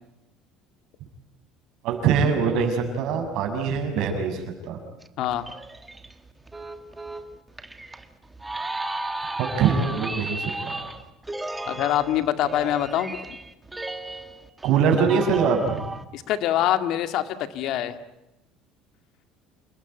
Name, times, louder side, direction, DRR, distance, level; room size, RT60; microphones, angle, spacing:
voice 1, 1.8-4.8 9.4-10.9 14.6-15.8, right 6 dB, 55° right, 4 dB, 6.5 m, -23 dB
sound 1, 5.0-16.0, right 2 dB, 10° right, 1.5 m, -35 dB
voice 2, 11.7-13.3 16.1-17.2 17.5-18.0, left 12 dB, 55° left, 10 dB, 2.0 m, -24 dB
28.5 x 19.5 x 9.2 m, 0.91 s
cardioid pair, 160°, 0 cm